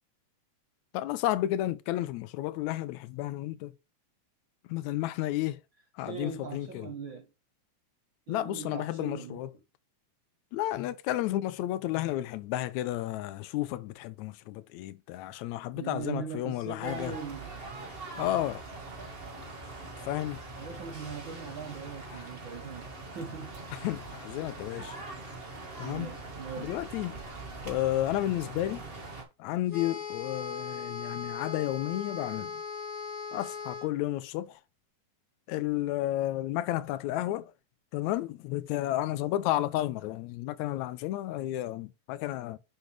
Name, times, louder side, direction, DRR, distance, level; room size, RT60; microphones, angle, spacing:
voice 1, 0.9-3.7 4.6-5.6 5.9-6.9 8.3-9.5 10.5-17.2 18.2-18.7 20.0-20.4 22.1-22.3 23.7-25.0 25.8-26.2 26.6-27.2 27.6-28.8 29.4-32.6 33.3-34.6 35.5-37.5 37.9-42.6, left 14 dB, 80° left, 1.7 m, -32 dB
voice 2, 6.0-7.3 8.3-9.4 15.7-17.5 18.1-18.5 20.6-23.6 24.8-24.9 25.8-26.8, right 6 dB, 75° right, 1.1 m, -40 dB
sound 1, 16.8-29.2, right 3 dB, 35° right, 0.9 m, -42 dB
sound 2, 29.7-33.9, left 5 dB, 20° left, 1.8 m, -38 dB
6.6 x 6.2 x 3.2 m
omnidirectional pair, 3.6 m